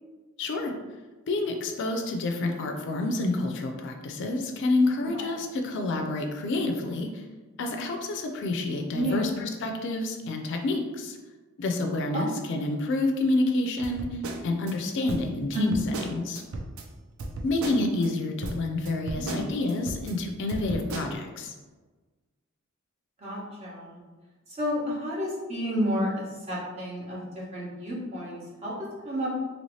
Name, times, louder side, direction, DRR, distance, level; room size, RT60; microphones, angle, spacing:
voice 1, 0.4-0.7 1.3-7.2 7.6-11.2 11.6-15.7 16.0-16.4 17.4-21.5, left 2 dB, 60° left, 4 dB, 0.4 m, -28 dB
voice 2, 8.9-9.3 12.1-12.2 15.5-15.9 19.2-19.4 23.2-24.0 24.6-29.4, equal, 30° right, -6 dB, 0.9 m, -30 dB
sound 1, 13.8-14.7 15.1-16.9 17.2-18.1 18.4-20.1 20.5-21.1, right 2 dB, 80° right, 0.5 m, -36 dB
3.0 x 2.7 x 3.1 m, 1.3 s
head